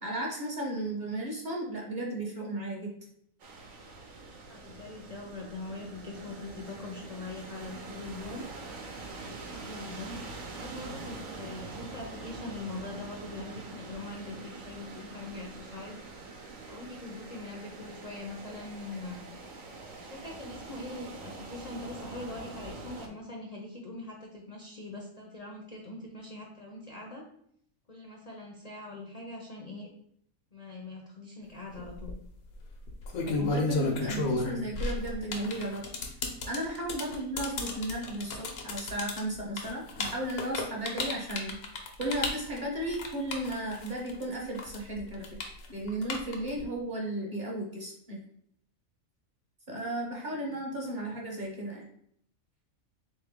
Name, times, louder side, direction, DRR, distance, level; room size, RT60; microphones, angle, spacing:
voice 1, 0.0-2.9 33.3-35.8 36.5-41.6 42.0-48.2 49.7-51.9, right 1 dB, 40° right, -1 dB, 0.8 m, -35 dB
sound 1, 3.4-23.1, right 3 dB, 75° right, 1.2 m, -44 dB
voice 2, 4.5-8.5 9.2-10.2 10.5-16.0 16.7-19.2 20.0-27.2 27.9-29.9 30.5-32.2 37.0-37.2 50.2-50.6, left 2 dB, 50° left, 0 dB, 0.4 m, -42 dB
sound 2, 31.8-32.1 32.9-44.2 44.6-46.6, left 3 dB, 90° left, 1.2 m, -32 dB
3.8 x 3.2 x 3.5 m, 0.69 s
omnidirectional pair, 1.5 m